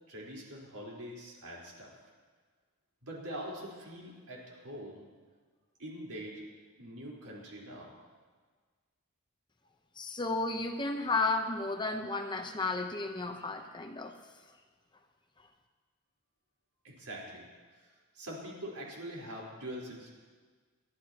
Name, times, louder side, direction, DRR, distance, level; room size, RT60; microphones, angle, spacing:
voice 1, 0.1-1.9 3.0-5.0 5.8-6.4 6.8-7.9 16.8-17.9 18.1-20.1, equal, 85° right, -4 dB, 4.3 m, -44 dB
voice 2, 10.0-14.2 15.4-15.5, left 3 dB, 20° left, 4 dB, 0.8 m, -33 dB
29.0 x 11.5 x 3.0 m, 1.5 s
head